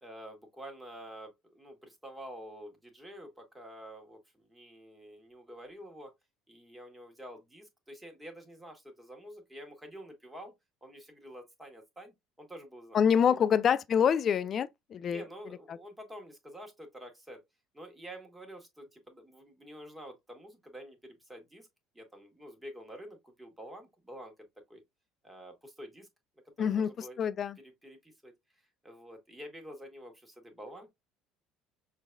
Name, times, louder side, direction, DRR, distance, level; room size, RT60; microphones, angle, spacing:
voice 1, 0.0-6.1 6.5-10.5 10.8-13.0 13.3-13.4 15.0-17.4 17.7-21.7 21.9-24.8 25.2-26.1 26.4-27.2 27.6-30.9, equal, 10° right, 1.5 m, -48 dB
voice 2, 12.9-15.2 26.6-27.6, left 7 dB, 40° left, 0.3 m, -26 dB
6.1 x 2.6 x 2.2 m
figure-of-eight pair, 60°, 0 cm